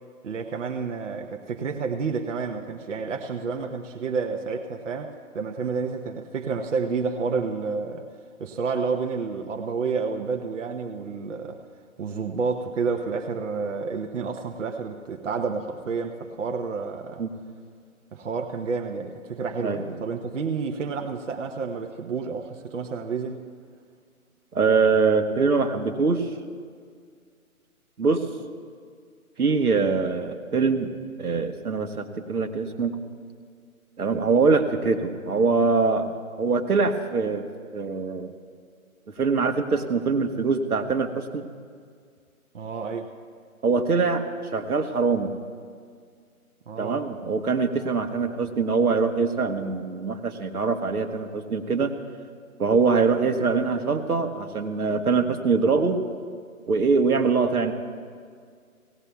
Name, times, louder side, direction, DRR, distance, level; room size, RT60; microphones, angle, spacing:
voice 1, 0.2-8.1 8.4-11.6 12.0-17.2 18.1-23.5 42.5-43.1 46.7-47.1, right 5 dB, 55° right, 4 dB, 0.9 m, -30 dB
voice 2, 24.5-26.3 28.0-28.2 29.4-30.9 31.2-32.9 34.0-36.1 36.4-37.4 37.7-38.3 39.2-41.4 43.6-44.2 44.5-45.3 46.8-51.9 52.6-56.0 56.7-57.7, right 4 dB, 80° right, 6 dB, 1.2 m, -23 dB
18.5 x 17.0 x 2.3 m, 2.1 s
figure-of-eight pair, 155°, 44 cm